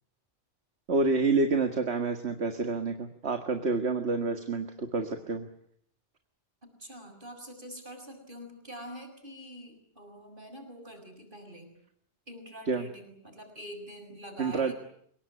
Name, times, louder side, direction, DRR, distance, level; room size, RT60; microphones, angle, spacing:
voice 1, 0.9-5.5 12.7-12.9 14.4-14.7, right 3 dB, 70° right, 6 dB, 2.0 m, -28 dB
voice 2, 6.8-11.7 12.3-14.7, equal, 45° right, 5 dB, 6.7 m, -45 dB
29.0 x 19.0 x 9.8 m, 0.69 s
omnidirectional pair, 1.2 m